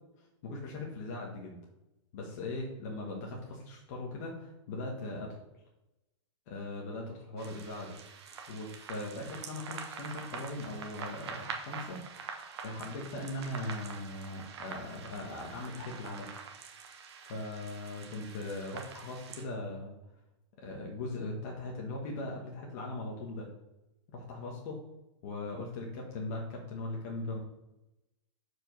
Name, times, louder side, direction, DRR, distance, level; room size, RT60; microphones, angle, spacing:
voice 1, 0.4-1.6 2.1-5.3 6.5-8.0 8.5-12.0 12.6-16.3 17.2-20.0 20.6-23.5 24.1-24.8 25.2-27.4, left 2 dB, 30° left, -2 dB, 1.2 m, -39 dB
sound 1, 7.4-19.4, right 6 dB, 55° right, 1.2 m, -45 dB
5.0 x 4.7 x 6.0 m, 0.93 s
supercardioid pair, 180°, 17 cm